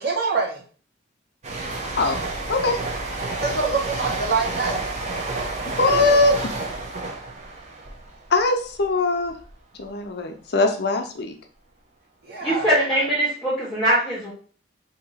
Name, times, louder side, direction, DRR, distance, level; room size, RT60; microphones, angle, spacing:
voice 1, 0.0-0.6 3.4-4.8 5.8-6.2 12.2-12.7, right 4 dB, 55° right, -3 dB, 1.2 m, -25 dB
sound 1, 1.4-8.9 9.2-9.5, right 2 dB, 40° right, 0.7 m, -30 dB
voice 2, 5.8-6.3 8.3-9.3 9.8-11.4, left 3 dB, 60° left, 5 dB, 0.6 m, -21 dB
voice 3, 12.4-14.3, right 1 dB, ahead, -9 dB, 1.1 m, -22 dB
2.9 x 2.8 x 4.0 m, 0.42 s
head